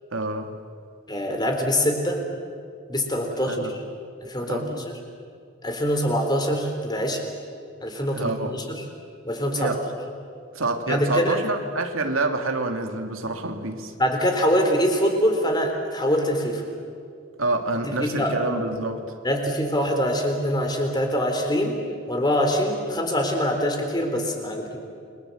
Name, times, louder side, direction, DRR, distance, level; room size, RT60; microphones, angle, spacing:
voice 1, 0.1-0.5 3.4-3.7 4.4-4.9 8.1-8.5 9.5-9.8 10.5-13.9 17.4-19.1, right 2 dB, 90° right, 4 dB, 2.7 m, -27 dB
voice 2, 1.1-2.2 2.9-3.8 4.2-4.8 5.6-7.2 7.8-8.8 9.2-9.7 10.9-11.4 14.0-16.6 17.8-18.4 19.2-21.8 22.1-24.8, equal, 20° left, 3 dB, 3.9 m, -24 dB
29.5 x 23.0 x 8.0 m, 2.4 s
head